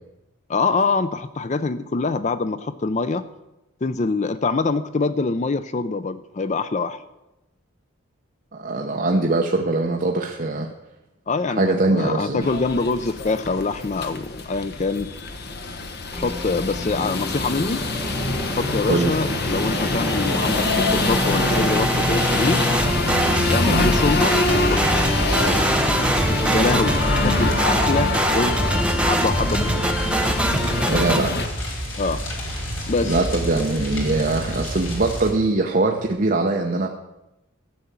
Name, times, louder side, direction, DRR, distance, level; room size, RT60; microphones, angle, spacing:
voice 1, 0.5-3.3 3.8-7.0 11.3-15.1 16.1-17.8 18.6-22.6 23.5-25.0 25.4-25.9 26.5-28.7 29.0-30.0 32.0-32.2 32.9-33.2, left 3 dB, 35° left, 12 dB, 0.4 m, -24 dB
voice 2, 8.5-10.7 11.6-12.5 18.9-19.1 23.7-23.9 30.9-31.4 33.0-36.9, right 2 dB, 40° right, 1 dB, 0.9 m, -22 dB
sound 1, 12.4-31.5, left 3 dB, 50° left, 1.1 m, -25 dB
sound 2, 16.1-31.2, right 1 dB, 5° right, 0.6 m, -24 dB
sound 3, 24.4-35.3, equal, 70° left, 3.6 m, -30 dB
13.5 x 7.0 x 8.7 m, 0.96 s
head